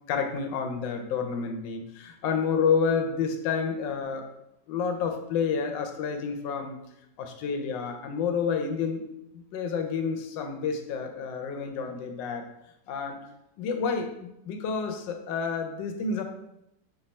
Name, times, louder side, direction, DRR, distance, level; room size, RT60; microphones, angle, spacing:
voice 1, 0.1-4.3 4.7-6.8 7.2-9.0 9.3-12.5 12.9-13.2 13.6-16.2, left 5 dB, 85° left, 5 dB, 1.3 m, -29 dB
3.4 x 2.6 x 4.2 m, 0.82 s
omnidirectional pair, 1.9 m